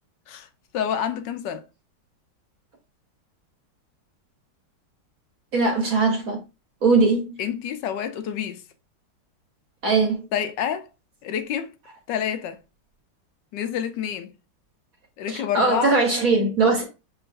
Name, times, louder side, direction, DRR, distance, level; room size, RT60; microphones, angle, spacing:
voice 1, 0.7-1.6 7.4-8.6 10.3-10.9 11.2-11.7 12.1-12.6 13.5-14.3 15.2-16.0, left 9 dB, 75° left, 1.2 m, -28 dB
voice 2, 5.5-6.4 6.8-7.3 9.8-10.3 15.3-16.8, right 3 dB, 55° right, 1.3 m, -20 dB
6.8 x 3.1 x 2.5 m
omnidirectional pair, 2.0 m